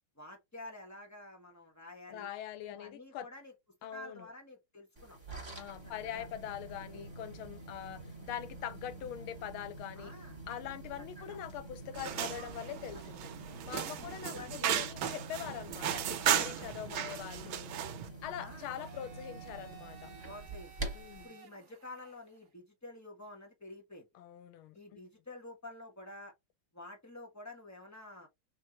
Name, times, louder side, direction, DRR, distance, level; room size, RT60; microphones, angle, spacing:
voice 1, 0.1-2.3 2.7-3.5 3.9-5.2 6.0-6.3 6.9-7.1 10.0-10.4 11.2-11.4 12.9-13.0 14.0-14.9 16.3-16.7 18.4-18.7 20.2-20.7 21.2-24.1 24.7-26.3 26.7-28.3, left 2 dB, 10° left, 0.8 m, -49 dB
voice 2, 2.1-3.3 3.8-4.3 5.5-10.1 10.5-13.3 13.6-17.7 18.2-20.1 20.9-21.3 24.1-25.0, left 10 dB, 75° left, 1.5 m, -43 dB
sound 1, 5.0-21.3, right 2 dB, 10° right, 1.8 m, -47 dB
sound 2, 11.9-18.1, right 10 dB, 75° right, 1.4 m, -35 dB
Domestic sounds home sounds, 18.5-22.5, right 9 dB, 50° right, 1.6 m, -55 dB
4.4 x 3.0 x 2.9 m
omnidirectional pair, 2.4 m